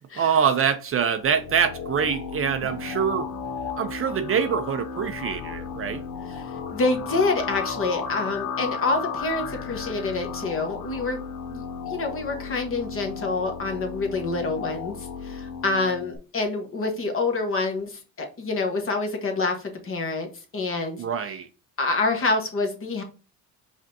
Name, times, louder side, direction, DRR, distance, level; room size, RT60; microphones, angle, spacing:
voice 1, 0.2-3.3 3.8-6.0 21.0-21.5, right 7 dB, 40° right, 0.5 m, -24 dB
sound 1, 1.2-16.2, left 6 dB, 75° left, 0.8 m, -34 dB
voice 2, 6.3-11.2 11.5-21.0 21.8-23.0, left 3 dB, 35° left, 1.3 m, -27 dB
5.1 x 3.3 x 2.7 m
cardioid pair, 105°, 36 cm